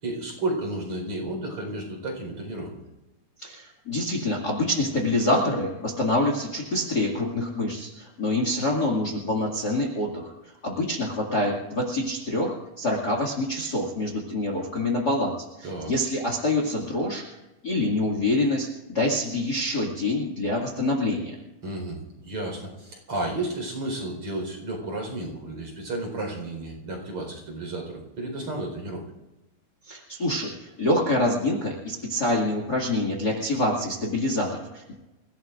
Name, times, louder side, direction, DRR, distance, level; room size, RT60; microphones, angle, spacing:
voice 1, 0.0-2.8 15.6-15.9 21.6-29.0, right 2 dB, 40° right, 0 dB, 5.3 m, -32 dB
voice 2, 3.4-10.3 10.6-17.3 17.6-21.3 29.9-34.9, left 1 dB, 30° left, 0 dB, 2.3 m, -26 dB
29.0 x 17.0 x 2.6 m, 1.0 s
omnidirectional pair, 4.2 m